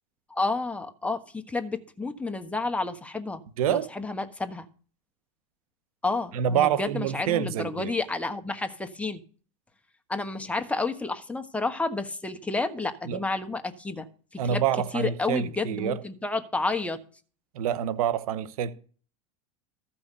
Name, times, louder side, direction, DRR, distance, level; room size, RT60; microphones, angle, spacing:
voice 1, 0.3-3.4 3.7-4.7 6.0-9.2 10.1-14.1 14.3-14.6 14.9-17.0, left 3 dB, 5° left, 1.2 m, -30 dB
voice 2, 3.6-3.9 6.3-7.9 13.1-13.2 14.4-16.0 17.5-18.7, right 9 dB, 80° right, 1.0 m, -27 dB
14.0 x 5.8 x 6.7 m
hypercardioid pair, 110°, 18 cm